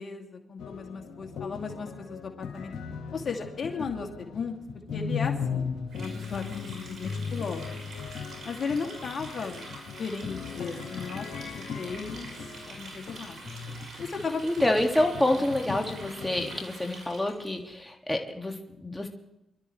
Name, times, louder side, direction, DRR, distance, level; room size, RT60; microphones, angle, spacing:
voice 1, 0.0-2.7 3.1-4.5 4.9-7.8 8.4-9.7 10.0-12.3 12.7-13.5 14.0-14.7 15.4-15.5, left 5 dB, 55° left, 3 dB, 2.5 m, -36 dB
sound 1, 0.6-16.6, left 6 dB, 80° left, 2.4 m, -37 dB
Water tap faucet, 5.9-17.5, right 2 dB, 60° right, 5.9 m, -45 dB
voice 2, 14.4-19.1, left 1 dB, 10° left, 2 dB, 2.0 m, -27 dB
25.5 x 12.5 x 3.2 m, 0.87 s
supercardioid pair, 55°, 0 cm